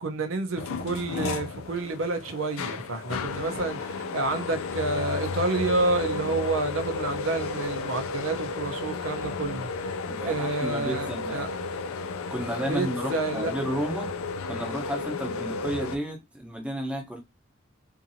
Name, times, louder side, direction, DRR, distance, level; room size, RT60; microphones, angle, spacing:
voice 1, 0.0-10.0 10.2-11.5 12.7-13.5, right 3 dB, 70° right, 0.6 m, -29 dB
sound 1, 0.6-16.0, left 4 dB, 85° left, 0.4 m, -33 dB
voice 2, 10.1-11.5 12.3-14.1 14.5-17.2, equal, 5° right, 0.8 m, -32 dB
2.6 x 2.6 x 2.7 m
head